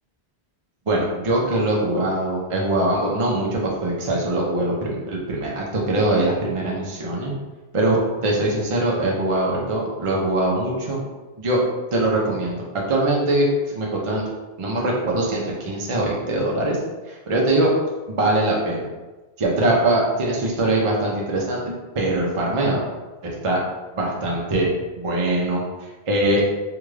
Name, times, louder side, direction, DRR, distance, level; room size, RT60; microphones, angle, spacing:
voice 1, 0.9-7.3 7.7-11.0 11.4-11.6 11.9-13.5 13.7-14.2 14.6-16.8 17.1-17.7 18.1-18.9 19.4-22.9 23.2-23.6 23.9-24.7 25.0-25.6 26.1-26.4, right 1 dB, 40° right, -3 dB, 0.6 m, -22 dB
3.4 x 2.3 x 3.2 m, 1.2 s
omnidirectional pair, 1.1 m